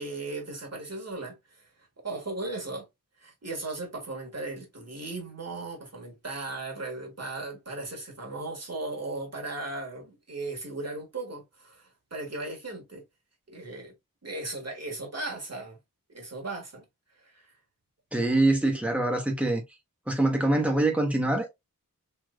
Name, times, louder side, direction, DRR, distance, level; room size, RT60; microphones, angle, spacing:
voice 1, 0.0-1.7 2.0-2.9 3.2-13.0 13.5-13.9 14.2-15.8 16.1-16.8 17.2-17.5, right 2 dB, 50° right, 1.4 m, -37 dB
voice 2, 18.1-19.6 20.1-21.5, right 2 dB, 5° right, 1.1 m, -24 dB
3.2 x 3.0 x 2.5 m
wide cardioid pair, 60°, 34 cm